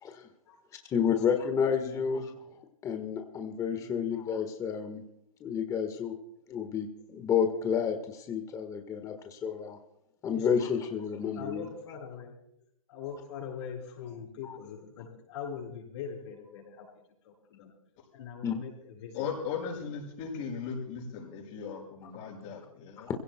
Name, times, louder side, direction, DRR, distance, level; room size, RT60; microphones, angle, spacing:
voice 1, 0.9-2.2 2.8-5.0 5.4-6.1 6.5-9.8 10.2-11.7 14.4-14.6 18.4-18.5, left 7 dB, 20° left, 5 dB, 1.5 m, -30 dB
voice 2, 1.8-2.4 3.8-4.2 10.3-10.5 11.2-12.4 12.9-17.7 18.1-19.2, left 7 dB, 55° left, 0 dB, 6.7 m, -42 dB
voice 3, 19.1-23.1, left 6 dB, 35° left, 0 dB, 5.7 m, -37 dB
25.5 x 16.5 x 2.2 m, 0.74 s
hypercardioid pair, 135°, 18 cm